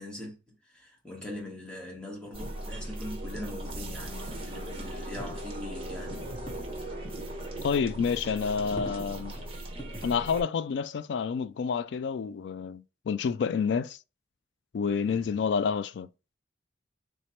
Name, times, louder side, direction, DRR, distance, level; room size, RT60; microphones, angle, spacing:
voice 1, 0.0-6.2 15.0-15.4, left 1 dB, 5° left, 1.4 m, -42 dB
sound 1, 2.2-10.2, equal, 25° left, 0.9 m, -47 dB
sound 2, 2.3-10.4, right 1 dB, 30° right, 1.0 m, -38 dB
voice 2, 7.6-9.3 10.0-14.0 14.7-16.1, left 6 dB, 65° left, 0.3 m, -29 dB
3.2 x 3.2 x 4.3 m
head